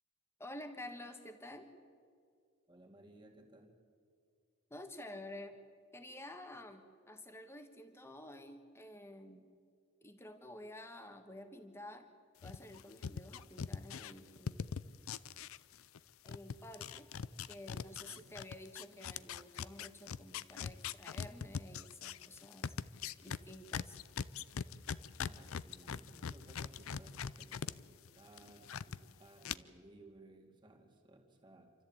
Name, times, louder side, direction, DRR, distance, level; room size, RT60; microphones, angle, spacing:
voice 1, 0.4-1.7 4.7-5.5 5.9-9.4 10.0-12.1 12.4-14.7 16.2-17.1 17.5-24.0, left 1 dB, 10° left, 7 dB, 1.4 m, -51 dB
voice 2, 2.7-3.8 18.0-18.3 25.2-31.7, right 2 dB, 20° right, 1 dB, 2.4 m, -60 dB
sound 1, 12.4-16.0 16.3-27.7 28.1-29.0 29.4-29.5, left 6 dB, 75° left, 0.5 m, -42 dB
28.0 x 13.5 x 8.7 m, 2.2 s
head